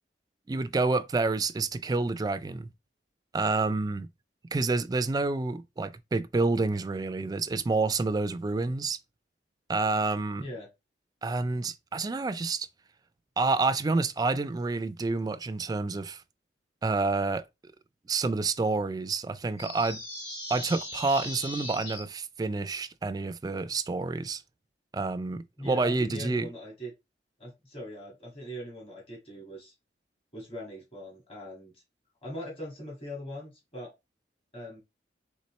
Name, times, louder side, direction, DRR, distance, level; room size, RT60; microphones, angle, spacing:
voice 1, 0.5-2.7 3.3-4.1 4.5-9.0 9.7-10.5 11.2-12.7 13.4-16.2 16.8-17.4 18.1-20.0 20.5-24.4 24.9-26.5, right 3 dB, 20° right, 0.3 m, -28 dB
voice 2, 10.4-10.7 25.6-26.9 27.4-29.7 30.3-31.8 32.2-33.9 34.5-34.8, equal, 35° left, 1.8 m, -40 dB
sound 1, 19.6-22.0, left 1 dB, 70° left, 2.1 m, -39 dB
4.1 x 3.6 x 3.1 m
head